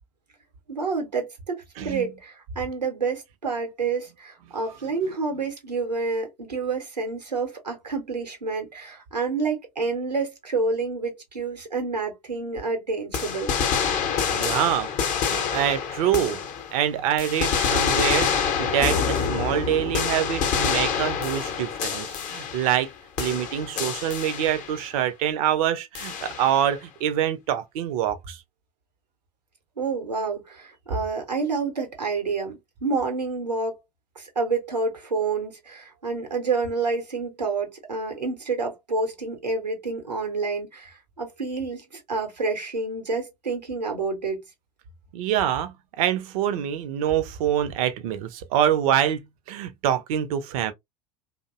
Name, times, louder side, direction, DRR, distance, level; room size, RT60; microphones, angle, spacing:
voice 1, 0.7-13.6 29.8-33.8 34.2-44.4, right 4 dB, 90° right, 0.8 m, -28 dB
voice 2, 1.8-2.1 14.3-16.4 16.7-18.3 18.6-22.9 23.2-28.4 45.1-50.7, right 10 dB, 60° right, 0.5 m, -25 dB
sound 1, 13.1-16.8 17.2-22.9 23.2-24.8 25.9-26.7, left 7 dB, 40° left, 0.6 m, -26 dB
2.5 x 2.1 x 2.3 m
figure-of-eight pair, 75°, 21 cm